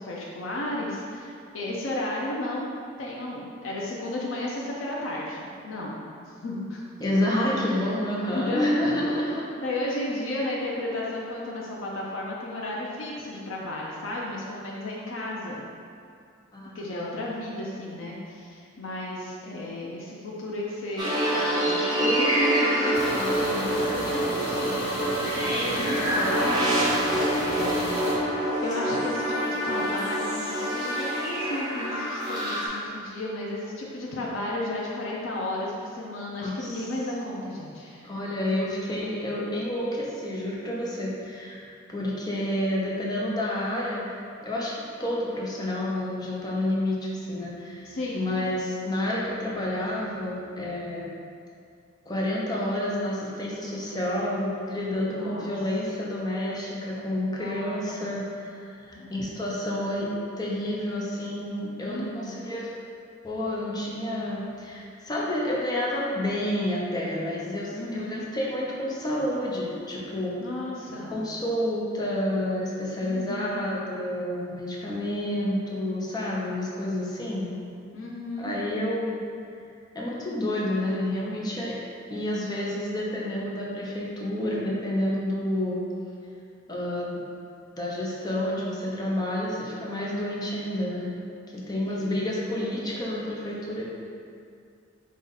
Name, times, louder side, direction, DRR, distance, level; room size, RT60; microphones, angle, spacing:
voice 1, 0.0-2.7 3.0-6.0 6.4-6.8 7.6-7.9 8.3-8.9 9.2-9.4 9.6-15.7 16.7-27.5 28.6-38.1 47.8-48.3 55.1-55.6 57.4-58.1 59.0-59.2 61.8-62.4 67.7-68.3 70.4-71.2 73.0-73.6 77.9-78.6 91.9-92.1, left 1 dB, 85° left, -4 dB, 0.6 m, -33 dB
voice 2, 7.0-9.4 16.5-16.8 36.4-36.8 38.0-44.1 44.4-51.2 52.1-60.1 60.4-62.7 63.2-70.3 71.1-77.5 78.4-79.2 79.9-81.7 82.1-85.8 86.7-87.2 87.8-91.1 91.7-93.8, left 1 dB, 20° left, -5 dB, 0.7 m, -29 dB
sound 1, 21.0-32.7, right 1 dB, 20° right, 1.0 m, -26 dB
sound 2, 22.9-28.1, right 1 dB, 55° left, 1.2 m, -31 dB
5.4 x 2.5 x 4.0 m, 2.4 s
head